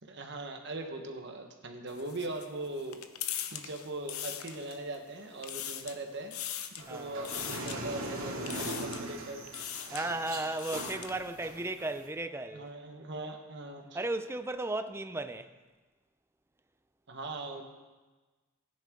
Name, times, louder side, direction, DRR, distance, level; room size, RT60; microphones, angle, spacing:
voice 1, 0.0-3.0 3.5-6.3 6.7-9.5 12.5-14.0 17.1-17.6, right 2 dB, 55° right, 1.4 m, -40 dB
sound 1, 1.9-5.0 5.3-6.0 6.3-6.9 7.2-7.8 8.5-9.1 9.5-10.1 10.4-11.2, left 10 dB, 85° left, 0.8 m, -40 dB
sound 2, 6.8-12.1, right 2 dB, 75° right, 2.3 m, -40 dB
voice 2, 9.9-12.7 13.9-15.5, right 2 dB, 10° right, 0.4 m, -35 dB
15.5 x 10.5 x 3.8 m
head